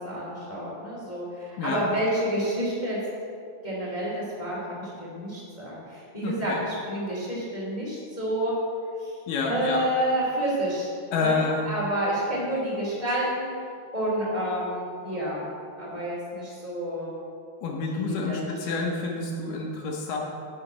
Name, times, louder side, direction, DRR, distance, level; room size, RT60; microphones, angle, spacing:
voice 1, 0.0-3.0 3.6-8.5 9.0-9.1 9.4-10.9 11.2-11.4 11.6-13.5 13.9-15.4 15.8-17.1 17.9-18.4, right 1 dB, 20° left, -6 dB, 1.0 m, -29 dB
voice 2, 6.2-6.6 9.3-9.8 11.1-11.7 17.6-20.2, left 4 dB, 75° left, -1 dB, 2.0 m, -28 dB
8.1 x 6.4 x 7.2 m, 2.3 s
omnidirectional pair, 5.0 m